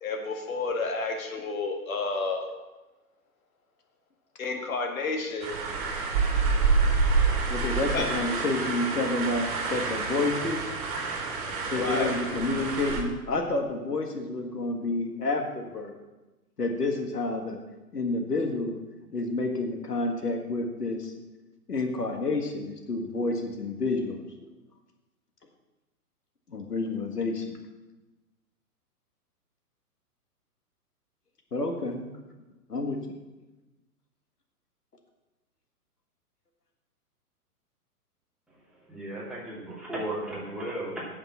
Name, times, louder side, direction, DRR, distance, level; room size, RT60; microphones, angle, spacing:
voice 1, 0.0-2.5 4.4-5.5 7.9-8.1 11.7-12.1, left 3 dB, 60° left, 3 dB, 1.9 m, -30 dB
sound 1, 5.4-13.0, right 4 dB, 40° right, 2.6 m, -27 dB
voice 2, 7.5-10.7 11.7-15.9 16.6-17.6 17.9-18.8 19.1-21.1 21.7-24.2 26.5-27.6 31.5-32.1 32.7-33.0, left 2 dB, 80° left, 3 dB, 1.8 m, -29 dB
voice 3, 38.9-41.1, right 1 dB, ahead, -7 dB, 2.7 m, -35 dB
8.4 x 7.2 x 7.4 m, 1.1 s
figure-of-eight pair, 120°, 47 cm